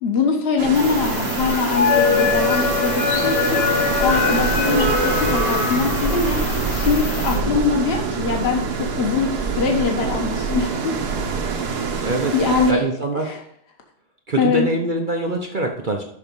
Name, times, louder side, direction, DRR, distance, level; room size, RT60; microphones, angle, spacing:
voice 1, 0.0-3.6 4.0-6.4 6.7-11.0 11.6-12.1 12.3-12.8 13.2-13.4 14.4-14.7, left 5 dB, 40° left, 2 dB, 1.3 m, -22 dB
sound 1, 0.6-12.7, right 5 dB, 70° right, 1.5 m, -25 dB
sound 2, 0.7-7.4, left 5 dB, 75° left, 2.5 m, -22 dB
voice 2, 12.0-12.3 12.7-13.4 14.3-16.0, right 2 dB, 45° right, 2 dB, 0.6 m, -24 dB
6.6 x 5.9 x 5.3 m, 0.67 s
omnidirectional pair, 1.8 m